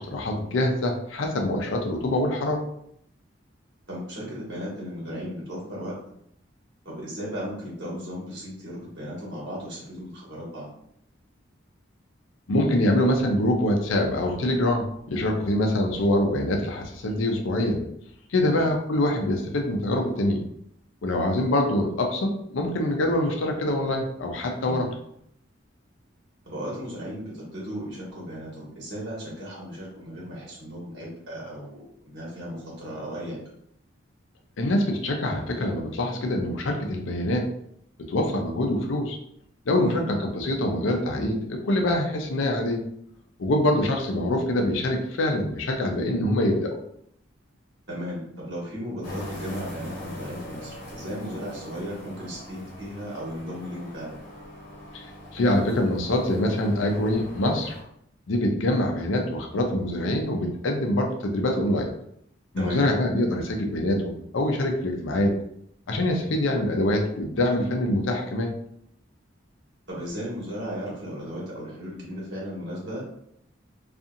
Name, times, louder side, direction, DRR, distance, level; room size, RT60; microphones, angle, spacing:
voice 1, 0.0-2.6 12.5-17.8 18.3-20.4 21.0-24.9 34.6-37.5 38.1-39.2 39.7-42.8 43.4-46.7 54.9-55.1 55.3-57.8 58.3-61.9 62.5-65.3 65.9-68.5, left 1 dB, 75° left, 2 dB, 0.5 m, -24 dB
voice 2, 3.9-5.9 6.8-10.7 18.4-18.7 24.6-25.0 26.4-33.4 39.8-40.1 43.6-43.7 47.9-54.2 62.6-62.9 69.9-73.0, equal, 55° right, -6 dB, 1.1 m, -36 dB
sound 1, 49.0-57.8, left 1 dB, 40° left, 1.1 m, -41 dB
2.7 x 2.4 x 2.5 m, 0.72 s
head